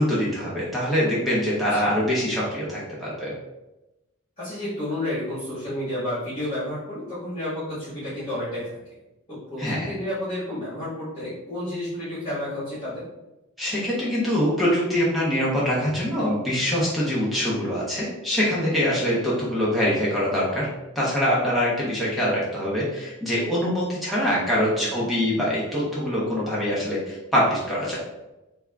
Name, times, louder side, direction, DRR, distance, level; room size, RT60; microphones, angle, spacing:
voice 1, 0.0-3.3 9.6-9.9 13.6-20.7 21.0-28.0, equal, ahead, -7 dB, 0.7 m, -24 dB
voice 2, 4.4-8.7 9.3-13.0 24.7-25.0, left 1 dB, 25° left, -12 dB, 1.4 m, -31 dB
3.4 x 2.4 x 3.4 m, 0.99 s
head